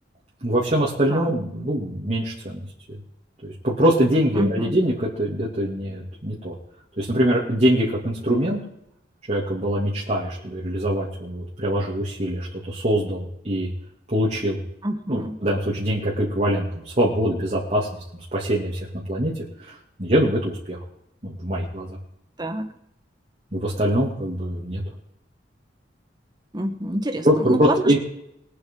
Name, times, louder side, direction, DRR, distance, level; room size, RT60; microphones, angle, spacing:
voice 1, 0.4-2.6 3.4-6.5 7.0-8.6 9.3-13.7 14.1-14.6 15.1-17.9 18.3-19.3 19.7-19.8 20.0-20.8 21.2-22.0 23.5-24.8 27.2-27.5 27.8-28.0, equal, 40° right, -6 dB, 2.9 m, -23 dB
voice 2, 4.3-4.7 14.8-15.4 22.4-22.7 26.5-28.0, right 1 dB, 25° right, 7 dB, 1.4 m, -27 dB
22.5 x 8.6 x 4.0 m, 0.77 s
head